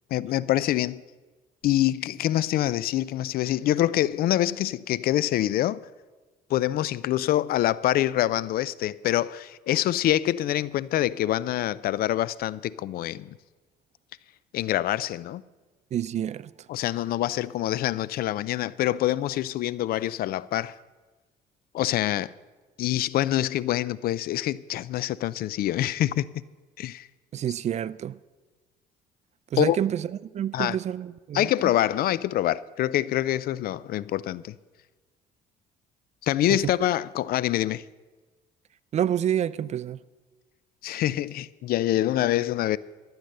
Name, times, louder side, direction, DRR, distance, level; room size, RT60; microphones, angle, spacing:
voice 1, 0.1-1.0 1.6-5.8 6.5-13.4 14.5-15.4 16.7-20.7 21.7-22.3 22.8-26.3 26.8-27.1 29.6-29.8 30.5-30.8 31.3-34.5 36.2-37.8 40.8-42.8, left 13 dB, 65° left, 0.4 m, -25 dB
voice 2, 15.9-16.5 27.3-28.2 29.5-31.5 36.5-36.7 38.9-40.0, right 10 dB, 40° right, 0.4 m, -28 dB
13.5 x 9.1 x 6.6 m
cardioid pair, 110°, 17 cm